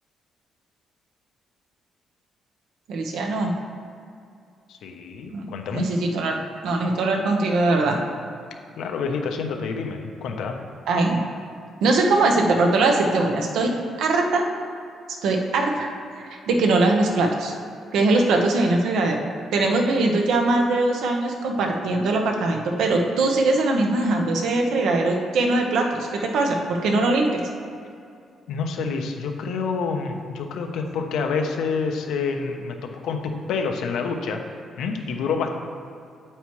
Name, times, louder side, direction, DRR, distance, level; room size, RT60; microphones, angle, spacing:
voice 1, 2.9-3.5 5.3-5.4 5.7-6.4 6.6-8.0 10.9-11.2 11.8-13.7 14.0-14.5 15.2-17.5 17.9-19.3 19.5-27.4, right 2 dB, 80° right, 2 dB, 1.1 m, -21 dB
voice 2, 4.7-5.9 8.8-10.6 28.5-34.4 34.8-35.6, left 5 dB, 85° left, 4 dB, 0.9 m, -28 dB
8.9 x 8.4 x 3.2 m, 2.4 s
cardioid pair, 145°, 0 cm